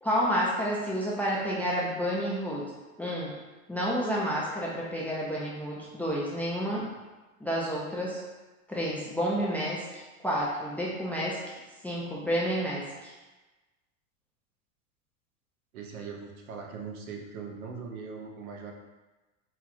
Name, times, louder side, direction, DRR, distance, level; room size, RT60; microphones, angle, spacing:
voice 1, 0.0-2.7 3.0-3.3 3.7-6.9 7.4-8.2 8.7-11.6 11.8-13.1, equal, 5° left, -5 dB, 0.4 m, -30 dB
voice 2, 15.7-18.7, right 5 dB, 75° right, 1 dB, 0.9 m, -40 dB
4.0 x 2.3 x 4.3 m, 1.2 s
hypercardioid pair, 115°, 43 cm